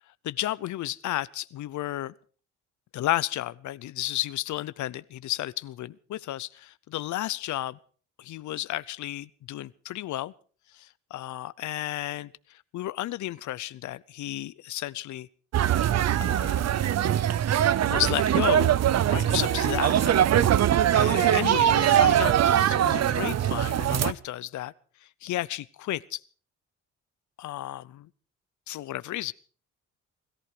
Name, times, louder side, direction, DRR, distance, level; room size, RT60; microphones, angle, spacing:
voice 1, 0.2-2.1 2.9-7.8 8.2-10.3 10.7-12.3 12.7-15.3 16.2-16.9 17.9-18.8 19.1-20.2 20.9-24.7 25.2-26.2 27.4-28.1 28.7-29.3, left 14 dB, 70° left, 0.7 m, -32 dB
sound 1, 15.5-24.1, right 11 dB, 60° right, 0.9 m, -22 dB
21.0 x 14.0 x 4.9 m
cardioid pair, 90°, 30 cm